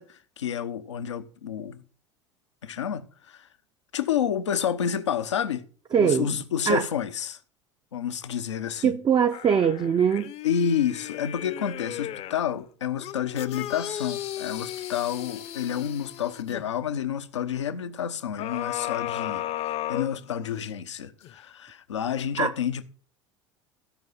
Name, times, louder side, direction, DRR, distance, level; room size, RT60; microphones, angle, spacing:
voice 1, 0.0-1.8 2.6-3.5 3.9-5.6 6.0-7.4 7.9-9.0 10.4-19.4 19.9-22.8, left 8 dB, 80° left, 0.9 m, -29 dB
voice 2, 5.9-6.4 6.7-6.8 8.8-10.3 22.4-22.5, right 7 dB, 30° right, 0.6 m, -22 dB
sound 1, 9.3-12.5 13.0-16.6 18.4-20.7 21.2-21.3, left 12 dB, 45° left, 0.8 m, -35 dB
15.0 x 5.6 x 5.4 m
hypercardioid pair, 75°, 15 cm